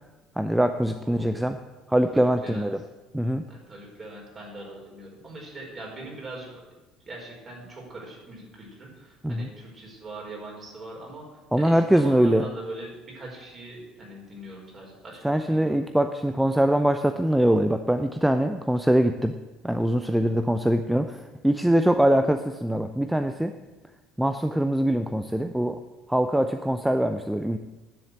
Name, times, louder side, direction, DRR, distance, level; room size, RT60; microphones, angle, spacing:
voice 1, 0.4-1.6 1.9-2.8 3.1-3.4 9.2-9.5 11.5-12.4 15.2-19.3 19.6-23.5 24.2-25.8 26.1-27.6, right 1 dB, 5° right, 8 dB, 0.6 m, -23 dB
voice 2, 1.0-1.4 2.1-2.7 3.5-6.6 7.0-11.2 11.5-15.7 20.0-20.3, right 2 dB, 35° right, -2 dB, 4.9 m, -41 dB
10.0 x 7.4 x 8.0 m, 1.1 s
figure-of-eight pair, 60°, 0 cm